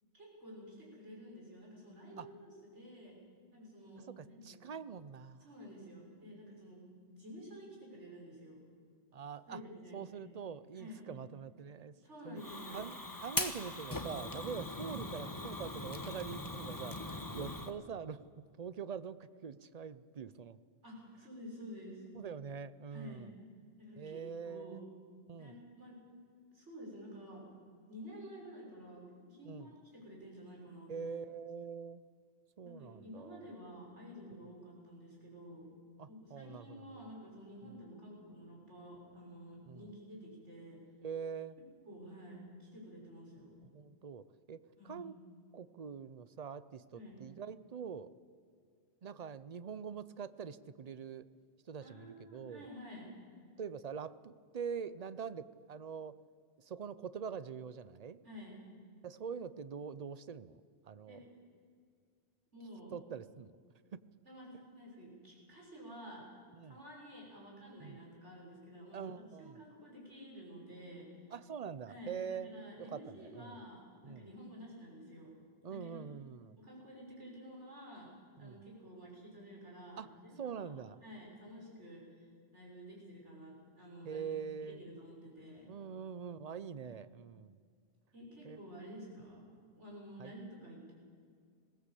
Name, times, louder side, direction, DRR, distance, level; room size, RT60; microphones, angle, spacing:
voice 1, 0.1-3.2 3.5-4.6 5.4-8.6 9.5-10.2 10.7-11.0 12.0-12.9 14.7-14.9 20.8-22.0 22.9-23.2 23.8-24.9 25.4-26.0 26.5-27.4 27.9-31.1 32.6-35.7 36.1-40.8 41.8-43.5 44.8-45.0 46.9-47.2 51.8-53.0 58.2-58.5 61.1-61.3 62.5-62.9 64.2-66.2 66.6-71.3 71.9-75.3 75.7-76.1 76.6-78.1 78.4-80.6 81.0-84.2 84.6-85.7 86.7-86.9 88.1-89.5 89.8-90.9, equal, 75° right, -3 dB, 6.7 m, -51 dB
voice 2, 4.0-5.5 9.1-9.6 9.9-11.9 12.2-12.4 12.7-18.2 18.6-20.6 22.2-23.3 24.0-24.8 25.3-25.6 29.5-29.7 30.9-32.0 32.6-33.4 36.0-37.1 39.7-39.9 41.0-41.6 43.7-45.1 45.5-48.1 49.0-51.3 51.7-52.7 53.6-56.2 56.6-58.2 59.0-61.2 62.9-63.5 63.9-64.0 66.5-66.8 67.8-68.0 68.9-69.6 71.3-73.6 74.0-74.3 75.6-76.6 78.4-78.6 80.0-80.1 80.4-81.0 84.0-84.8 85.7-87.6 88.4-88.6 90.2-90.3, right 6 dB, 45° right, 15 dB, 0.6 m, -44 dB
Fire, 12.4-17.7, left 2 dB, 20° left, 1.2 m, -41 dB
20.5 x 17.5 x 8.3 m, 2.2 s
omnidirectional pair, 1.2 m